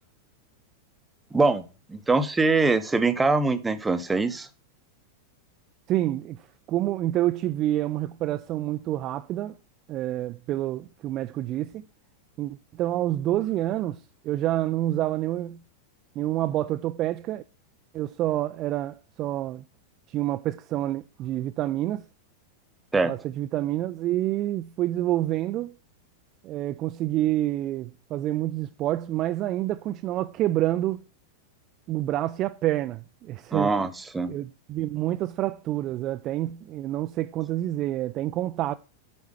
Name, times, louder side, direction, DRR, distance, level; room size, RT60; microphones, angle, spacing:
voice 1, 1.3-4.5 22.9-23.1 33.5-34.3, right 3 dB, 10° right, 0.7 m, -23 dB
voice 2, 5.9-9.6 9.9-11.8 12.4-15.6 16.2-17.4 17.9-19.6 20.1-22.1 23.0-25.8 26.4-31.0 31.9-33.7 34.3-38.7, right 14 dB, 35° right, 0.3 m, -28 dB
8.3 x 4.3 x 4.9 m
figure-of-eight pair, 90°, 0 cm